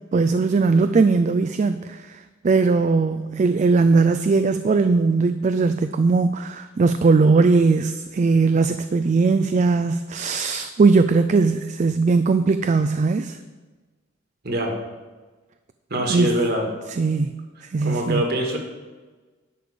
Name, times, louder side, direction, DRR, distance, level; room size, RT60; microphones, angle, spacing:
voice 1, 0.1-13.4 16.1-16.4 16.9-18.2, right 4 dB, 35° right, 10 dB, 0.3 m, -19 dB
voice 2, 15.9-16.7 17.8-18.6, right 1 dB, 50° right, 1 dB, 1.8 m, -23 dB
10.5 x 6.7 x 5.1 m, 1.3 s
head